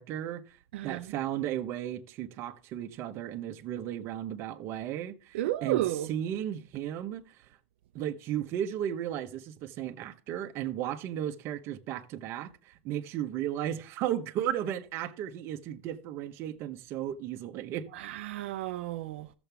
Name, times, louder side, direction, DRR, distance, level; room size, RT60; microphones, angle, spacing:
voice 1, 0.0-0.6 0.8-5.8 6.1-7.5 7.9-17.9, right 11 dB, 40° right, 1.0 m, -35 dB
voice 2, 0.7-1.1 5.3-6.1 17.9-19.3, right 14 dB, 70° right, 0.6 m, -32 dB
14.0 x 7.1 x 3.5 m
supercardioid pair, 140°, 6 cm